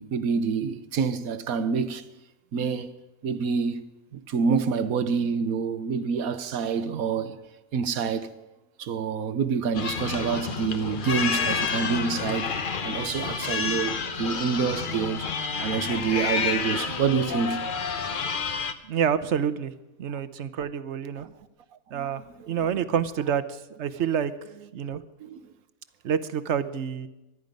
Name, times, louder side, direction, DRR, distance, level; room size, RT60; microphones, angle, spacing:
voice 1, 0.0-2.0 2.5-2.9 3.2-3.8 4.1-7.4 7.7-8.3 8.8-12.5 12.8-15.3 15.6-17.6 21.9-22.1 25.2-25.4, right 6 dB, 75° right, 1.3 m, -27 dB
sound 1, 9.7-18.7, left 5 dB, 40° left, 0.9 m, -29 dB
voice 2, 18.8-19.7 20.0-21.3 21.9-24.3 24.7-25.0 26.0-27.1, right 8 dB, 55° right, 1.0 m, -28 dB
24.0 x 11.0 x 5.3 m
omnidirectional pair, 1.5 m